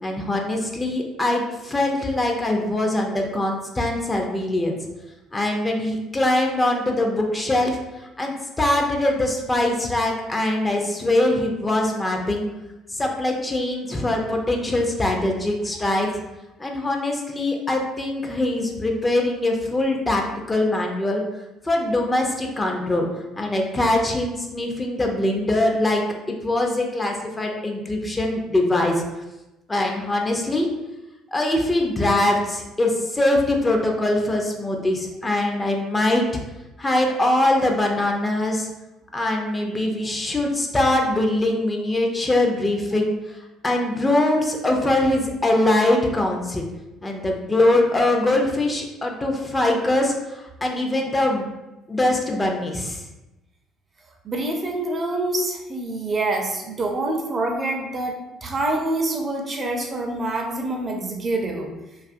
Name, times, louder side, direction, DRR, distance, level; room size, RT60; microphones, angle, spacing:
voice 1, 0.0-4.8 5.3-7.8 8.2-12.5 12.9-16.1 16.6-21.2 21.6-29.0 29.7-30.7 31.3-36.2 36.8-38.7 39.1-43.1 43.6-46.6 47.0-51.5 51.9-53.0, left 1 dB, 20° left, 1 dB, 0.5 m, -22 dB
voice 2, 54.2-61.7, right 2 dB, 35° right, 1 dB, 0.5 m, -26 dB
2.6 x 2.4 x 2.5 m, 1.0 s
hypercardioid pair, 60°, 0 cm